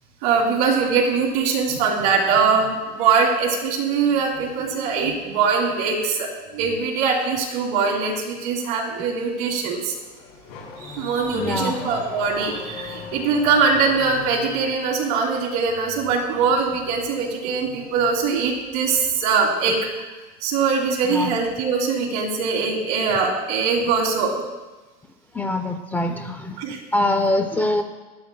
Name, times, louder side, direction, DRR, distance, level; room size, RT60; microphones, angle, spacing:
voice 1, 0.2-9.9 10.8-20.1 20.4-24.3 26.6-26.8, right 5 dB, 65° right, -1 dB, 2.6 m, -22 dB
Car / Accelerating revving vroom, 9.8-14.8, left 4 dB, 80° left, 3.5 m, -38 dB
voice 2, 11.3-11.8 21.1-21.3 25.3-26.6 26.9-27.8, left 1 dB, 10° left, 5 dB, 0.3 m, -23 dB
14.5 x 11.0 x 2.2 m, 1.2 s
cardioid pair, 175°, 19 cm